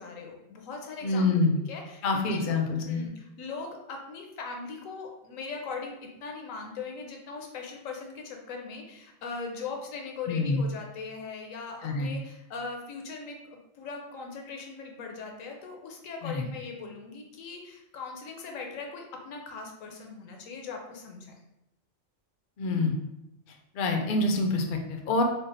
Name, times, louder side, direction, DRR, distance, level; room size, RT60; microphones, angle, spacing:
voice 1, 0.0-1.3 1.7-2.5 2.9-21.3, left 4 dB, 85° left, 2 dB, 1.1 m, -40 dB
voice 2, 1.0-1.6 2.0-3.1 10.3-10.6 11.8-12.1 16.2-16.5 22.6-22.9 23.7-25.2, left 3 dB, 60° left, 3 dB, 0.5 m, -26 dB
3.4 x 2.0 x 3.9 m, 0.88 s
omnidirectional pair, 1.3 m